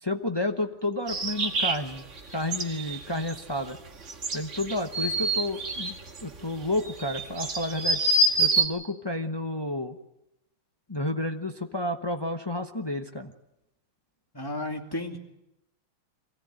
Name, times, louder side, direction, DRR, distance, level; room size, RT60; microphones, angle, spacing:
voice 1, 0.0-2.0 2.3-3.8 4.3-6.0 6.2-8.0 8.4-10.0 10.9-13.3, left 1 dB, 30° left, 5 dB, 0.4 m, -31 dB
sound 1, 1.1-8.6, right 2 dB, 35° right, 1.8 m, -27 dB
voice 2, 14.3-15.2, left 1 dB, 10° left, 2 dB, 2.4 m, -33 dB
24.0 x 17.0 x 9.0 m, 0.86 s
omnidirectional pair, 2.4 m